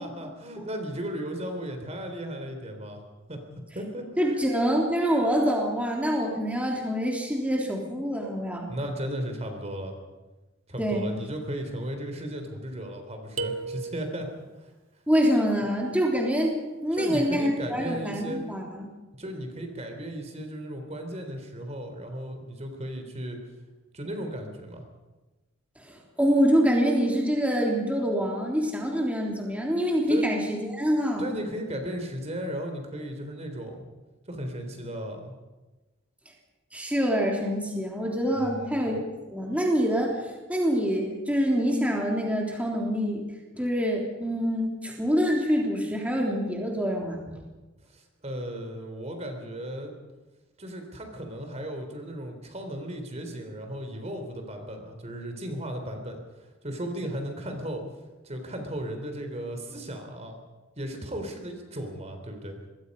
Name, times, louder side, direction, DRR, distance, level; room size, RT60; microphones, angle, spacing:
voice 1, 0.0-3.0 3.3-3.4 3.7-4.3 8.7-10.0 10.7-14.3 14.6-14.7 16.9-18.4 19.2-23.4 23.9-24.8 30.1-30.3 31.2-33.8 34.3-35.3 38.4-39.1 47.9-49.9 50.6-57.8 58.2-60.4 60.8-62.5, right 1 dB, 35° right, 5 dB, 3.6 m, -35 dB
voice 2, 4.2-8.7 10.8-11.0 15.1-16.5 16.8-18.9 25.8-31.2 36.7-39.0 39.3-43.2 43.5-47.4, equal, 5° right, -1 dB, 3.4 m, -25 dB
sound 1, 13.4-14.5, right 4 dB, 90° right, 1.8 m, -34 dB
26.0 x 21.5 x 5.5 m, 1.2 s
head